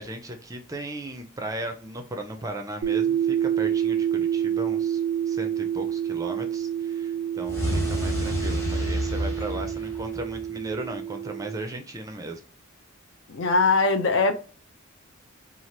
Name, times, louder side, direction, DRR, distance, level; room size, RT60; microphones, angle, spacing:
voice 1, 0.0-5.0 5.3-12.4, right 1 dB, 15° right, 0.4 m, -36 dB
sound 1, 2.8-11.6, right 9 dB, 90° right, 0.6 m, -28 dB
sound 2, 7.4-10.6, equal, 15° left, 0.8 m, -29 dB
voice 2, 13.3-14.4, left 3 dB, 60° left, 0.5 m, -21 dB
2.8 x 2.4 x 3.1 m
head